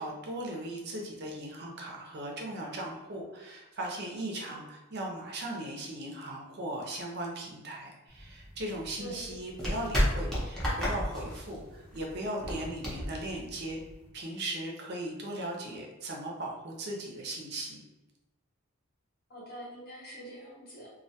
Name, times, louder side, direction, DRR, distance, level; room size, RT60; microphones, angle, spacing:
voice 1, 0.0-13.8 14.1-17.8, right 1 dB, 50° right, 0 dB, 0.4 m, -38 dB
sound 1, 8.1-14.1, equal, 5° left, 0.5 m, -33 dB
voice 2, 9.0-9.3 19.3-20.9, equal, 45° left, -4 dB, 0.7 m, -45 dB
2.2 x 2.1 x 2.7 m, 1.1 s
head